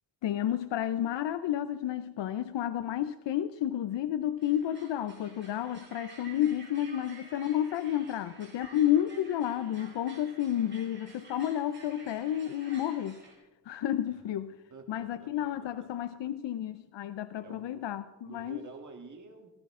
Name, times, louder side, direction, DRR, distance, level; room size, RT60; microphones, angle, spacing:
voice 1, 0.2-13.2 13.7-14.5 14.9-18.6, left 11 dB, 80° left, 0.6 m, -31 dB
sound 1, 4.4-13.3, right 3 dB, 25° right, 3.6 m, -52 dB
voice 2, 14.7-15.5 17.4-17.8 18.2-19.5, right 4 dB, 45° right, 1.9 m, -48 dB
16.0 x 14.5 x 3.7 m
wide cardioid pair, 135°, 42 cm